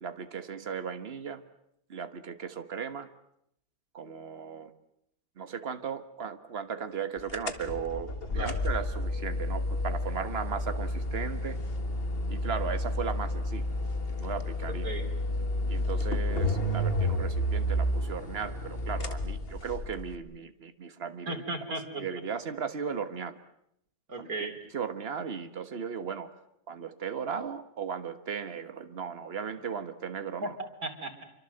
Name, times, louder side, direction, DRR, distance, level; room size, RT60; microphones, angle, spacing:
voice 1, 0.0-1.4 1.9-3.1 3.9-4.7 5.4-11.6 12.3-13.7 14.2-14.9 15.7-21.4 22.0-23.4 24.2-24.3 24.7-26.3 26.7-30.6, right 6 dB, 45° right, 10 dB, 1.6 m, -36 dB
sound 1, 7.3-20.1, left 1 dB, 40° left, 1.8 m, -31 dB
voice 2, 21.3-22.0 24.1-24.5 30.4-31.2, right 2 dB, 75° right, 4 dB, 3.7 m, -35 dB
27.0 x 24.5 x 7.9 m, 0.76 s
omnidirectional pair, 1.5 m